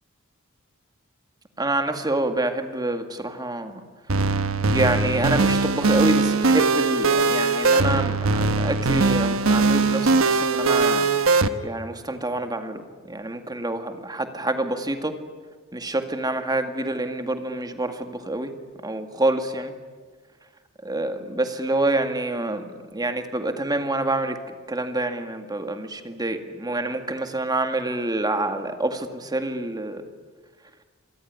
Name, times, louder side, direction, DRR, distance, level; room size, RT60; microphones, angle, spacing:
voice 1, 1.6-3.7 4.7-11.1 11.6-15.1 15.7-18.5 18.8-19.7 20.8-22.6 22.9-24.4 24.7-30.0, right 2 dB, 20° right, 7 dB, 2.0 m, -27 dB
sound 1, 4.1-11.5, right 3 dB, 70° right, 1.2 m, -20 dB
26.5 x 21.0 x 9.5 m, 1.5 s
head